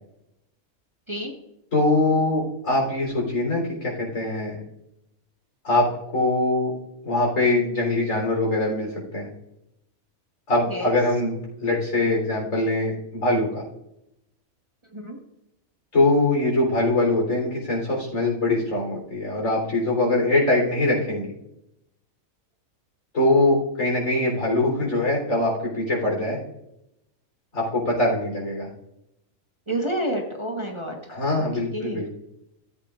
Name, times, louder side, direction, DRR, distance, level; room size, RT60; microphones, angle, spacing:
voice 1, 1.7-4.6 5.6-5.9 6.1-6.7 7.0-9.3 10.5-11.3 11.6-13.6 15.9-21.3 23.1-26.4 27.5-28.7 31.1-32.1, left 2 dB, 65° left, -2 dB, 4.0 m, -22 dB
voice 2, 29.7-31.0 31.3-31.4 31.7-32.0, right 1 dB, 20° right, 0 dB, 1.1 m, -29 dB
14.5 x 8.2 x 2.5 m, 0.84 s
omnidirectional pair, 1.5 m